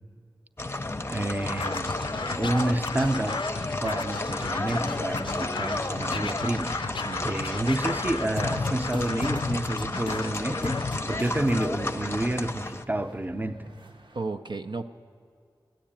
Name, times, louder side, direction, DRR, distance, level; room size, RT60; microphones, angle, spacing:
sound 1, 0.6-12.8, left 2 dB, 30° left, 0.6 m, -32 dB
voice 1, 0.7-2.0 2.4-3.4 3.8-6.8 7.2-10.8 11.1-13.7, right 1 dB, 20° right, 8 dB, 0.7 m, -29 dB
Scratching (performance technique), 1.4-11.7, left 4 dB, 75° left, 0.4 m, -34 dB
sound 2, 1.4-14.2, right 3 dB, 85° right, 1.0 m, -53 dB
voice 2, 7.1-7.6 14.1-14.9, right 3 dB, 70° right, 6 dB, 0.5 m, -34 dB
14.0 x 10.0 x 8.8 m, 2.3 s
wide cardioid pair, 70°, 8 cm